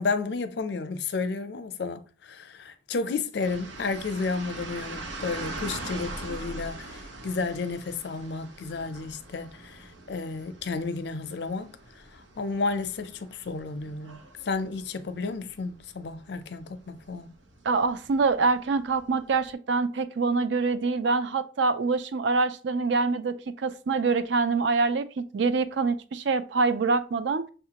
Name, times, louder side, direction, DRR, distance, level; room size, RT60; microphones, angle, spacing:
voice 1, 0.0-14.2 14.4-17.3, left 4 dB, 65° left, 0.4 m, -32 dB
sound 1, 3.4-19.5, right 2 dB, 90° right, 0.9 m, -43 dB
voice 2, 17.6-27.4, right 4 dB, 70° right, 0.4 m, -25 dB
6.3 x 2.4 x 2.8 m
head